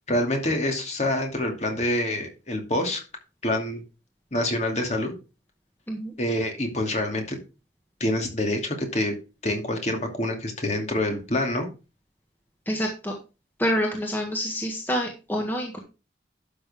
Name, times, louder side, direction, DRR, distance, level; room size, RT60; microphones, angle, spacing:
voice 1, 0.1-3.0 3.4-3.8 4.3-5.1 6.2-7.4 8.0-9.1 9.4-11.7, left 1 dB, 35° left, 3 dB, 2.6 m, -26 dB
voice 2, 12.7-13.1 13.6-15.8, equal, 10° left, 1 dB, 1.6 m, -27 dB
11.5 x 6.6 x 3.6 m, 0.30 s
head